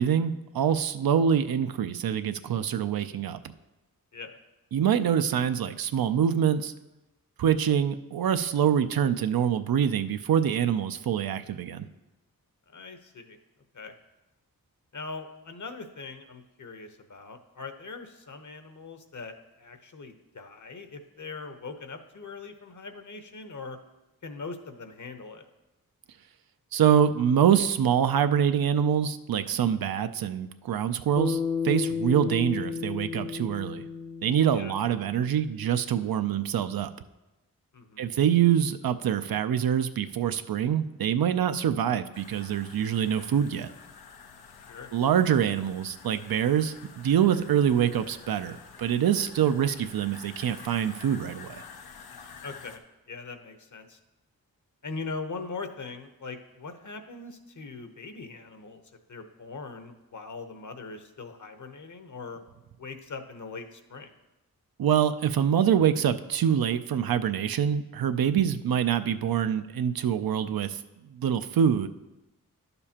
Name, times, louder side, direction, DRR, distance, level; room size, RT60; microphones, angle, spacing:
voice 1, 0.0-3.5 4.7-6.7 7.4-11.9 26.7-33.8 34.2-36.9 38.0-43.7 44.9-51.6 64.8-70.8 71.1-71.9, right 9 dB, 70° right, 10 dB, 0.5 m, -25 dB
voice 2, 12.7-13.4 13.7-13.9 14.9-23.8 24.2-25.5 34.5-34.7 37.7-38.1 44.7-44.9 52.4-52.8 53.1-54.0 54.8-58.8 59.1-62.4 62.8-64.1, left 4 dB, 55° left, 7 dB, 1.0 m, -41 dB
Bass guitar, 31.2-35.6, left 6 dB, 15° left, 0.4 m, -33 dB
sound 1, 42.1-52.8, left 6 dB, 85° left, 0.7 m, -48 dB
11.0 x 6.9 x 2.9 m, 1.0 s
cardioid pair, 45°, 37 cm